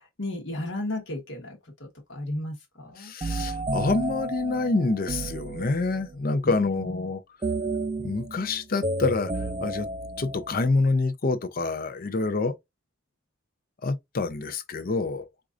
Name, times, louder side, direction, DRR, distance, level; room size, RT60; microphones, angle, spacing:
voice 1, 0.0-3.1 6.4-7.1, left 1 dB, 65° left, 1.1 m, -34 dB
voice 2, 3.0-7.2 8.0-9.3 9.6-9.9 10.2-12.5 13.8-15.3, left 3 dB, 45° left, 0.5 m, -27 dB
sound 1, 3.2-6.2 7.4-10.7, right 2 dB, 25° right, 0.3 m, -32 dB
4.5 x 2.5 x 2.4 m
head